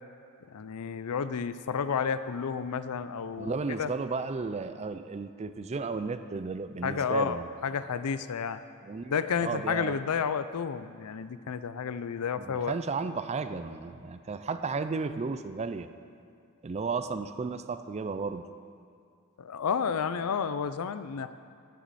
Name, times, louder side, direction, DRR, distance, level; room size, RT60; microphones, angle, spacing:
voice 1, 0.5-3.9 6.8-8.6 9.1-12.8 19.4-21.3, left 6 dB, 85° left, 13 dB, 0.5 m, -31 dB
voice 2, 3.4-7.5 8.8-9.1 9.4-9.9 12.4-15.9 16.6-18.4, right 4 dB, 30° right, 11 dB, 0.4 m, -33 dB
15.5 x 9.3 x 4.2 m, 2.3 s
head